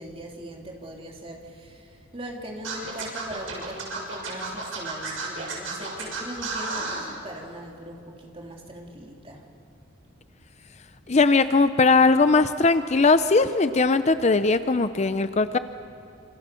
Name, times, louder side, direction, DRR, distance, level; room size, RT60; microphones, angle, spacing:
voice 1, 0.0-9.4, right 1 dB, 30° right, 0 dB, 3.4 m, -40 dB
Scratching (performance technique), 2.6-7.0, right 3 dB, 80° right, 6.9 m, -32 dB
voice 2, 11.1-15.6, left 3 dB, 35° left, 11 dB, 0.6 m, -19 dB
28.5 x 27.5 x 7.0 m, 2.5 s
head